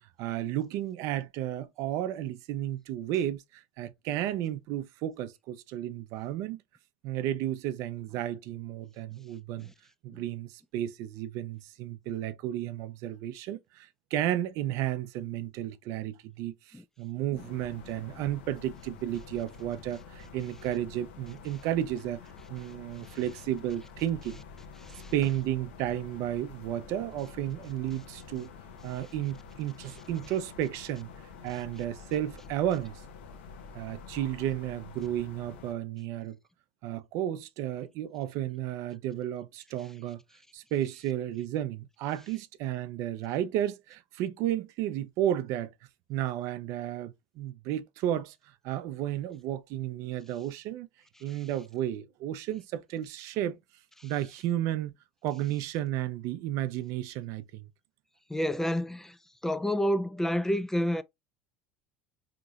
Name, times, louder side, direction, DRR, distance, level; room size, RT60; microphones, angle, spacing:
voice 1, 0.2-6.6 7.0-9.7 10.0-22.2 22.5-24.4 25.1-28.5 28.8-31.1 31.4-33.0 33.7-36.4 36.8-40.2 40.5-45.7 46.1-48.4 48.6-50.9 51.2-53.6 54.0-54.9 55.2-57.7, right 12 dB, 60° right, 0.5 m, -33 dB
sound 1, 17.4-35.7, left 5 dB, 85° left, 0.7 m, -48 dB
voice 2, 24.8-25.1 51.3-51.4 54.0-54.1 58.3-59.2 59.4-61.0, equal, 5° left, 0.3 m, -30 dB
3.8 x 2.9 x 2.4 m
supercardioid pair, 100°, 6 cm